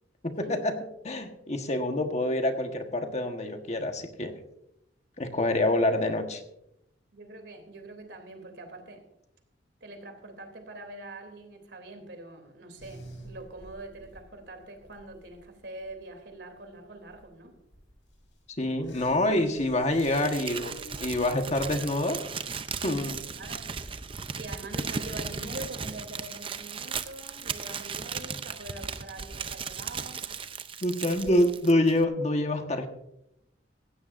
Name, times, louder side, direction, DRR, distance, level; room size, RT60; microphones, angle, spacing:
voice 1, 0.2-0.8 1.0-4.4 5.2-6.4 18.6-20.7 21.0-22.2 22.8-23.2 30.8-32.9, left 1 dB, 40° left, 5 dB, 1.3 m, -26 dB
voice 2, 7.1-9.0 9.8-17.5 23.4-23.6 24.3-30.3 31.1-31.2, right 2 dB, 70° right, 5 dB, 3.1 m, -44 dB
sound 1, 12.8-23.4, left 1 dB, 85° left, 6.2 m, -49 dB
Crumpling crinkling, 20.0-32.0, right 5 dB, 30° right, 0.6 m, -36 dB
17.0 x 15.5 x 2.6 m, 0.82 s
head